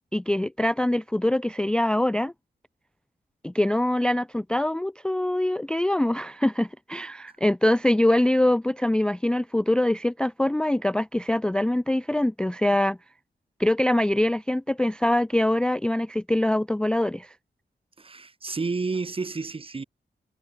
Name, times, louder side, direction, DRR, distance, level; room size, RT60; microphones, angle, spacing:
voice 1, 0.1-2.3 3.4-13.0 13.6-17.3, left 1 dB, 5° left, 0.3 m, -24 dB
voice 2, 18.0-19.8, right 4 dB, 30° right, 0.9 m, -30 dB
wide cardioid pair, 125°, 18 cm